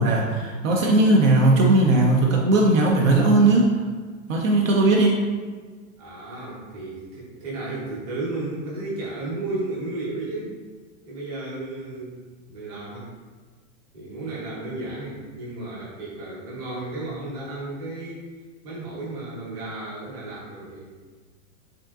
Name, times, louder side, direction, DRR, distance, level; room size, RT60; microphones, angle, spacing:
voice 1, 0.0-3.7 4.3-5.2, right 2 dB, 65° right, -1 dB, 0.7 m, -18 dB
voice 2, 6.0-10.5 11.1-12.2 12.5-13.1 13.9-18.2 18.6-20.9, right 2 dB, 25° right, -7 dB, 0.9 m, -33 dB
3.6 x 3.6 x 2.4 m, 1.4 s
supercardioid pair, 180°, 42 cm